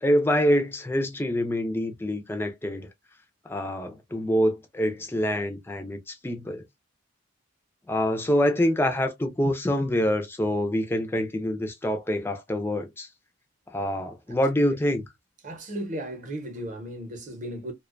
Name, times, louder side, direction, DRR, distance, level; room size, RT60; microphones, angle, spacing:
voice 1, 0.0-2.9 3.5-6.6 7.9-13.1 13.7-15.0, equal, 10° left, 0.3 m, -26 dB
voice 2, 15.4-17.7, right 1 dB, 40° right, 0.7 m, -35 dB
2.4 x 2.2 x 2.4 m
head